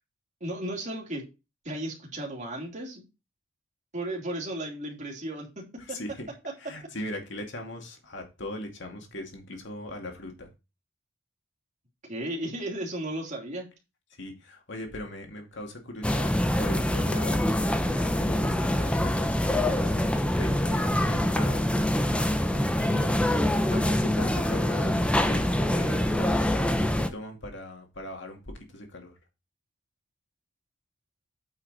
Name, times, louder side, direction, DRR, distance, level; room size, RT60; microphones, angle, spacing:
voice 1, 0.4-1.2 1.6-3.0 3.9-6.0 6.6-6.7 12.1-13.7, right 1 dB, 40° right, 0 dB, 2.9 m, -34 dB
voice 2, 5.9-6.3 6.6-10.5 14.2-21.8 22.8-23.1 23.7-25.5 25.7-29.1, left 1 dB, 65° left, 3 dB, 2.3 m, -40 dB
market - supermercato, 16.0-27.1, left 1 dB, 5° left, 0.7 m, -25 dB
8.7 x 5.6 x 4.1 m, 0.27 s
head